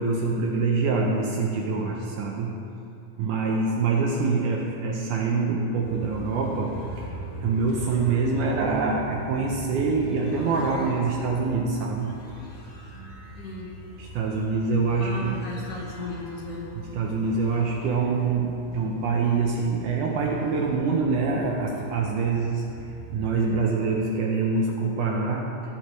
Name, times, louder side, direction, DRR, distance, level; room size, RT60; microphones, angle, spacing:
voice 1, 0.0-2.6 3.2-7.1 7.4-12.1 14.0-15.4 16.8-25.5, right 4 dB, 75° right, 0 dB, 2.0 m, -25 dB
sound 1, 5.8-23.4, equal, 45° left, 2.6 m, -41 dB
voice 2, 13.4-13.7 15.0-16.6, left 1 dB, 60° left, -3 dB, 2.5 m, -35 dB
17.0 x 7.6 x 3.1 m, 2.8 s
omnidirectional pair, 4.2 m